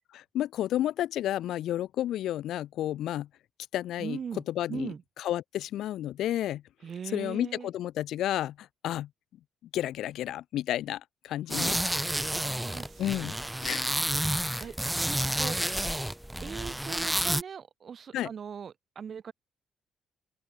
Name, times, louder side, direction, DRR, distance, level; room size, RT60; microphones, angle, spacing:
voice 1, 0.1-3.3 3.7-4.2 4.5-6.6 7.1-9.1 9.7-11.8 13.0-13.4 13.6-14.0 14.4-14.7 18.1-18.3, left 12 dB, 80° left, 1.1 m, -31 dB
voice 2, 4.0-4.4 4.7-5.0 6.8-7.7 12.3-13.1 14.2-14.3 14.6-14.7 15.3-15.8 16.4-19.3, right 7 dB, 50° right, 3.6 m, -40 dB
sound 1, 11.5-17.4, right 1 dB, 5° right, 0.9 m, -30 dB
open air
cardioid pair, 90°, 0 cm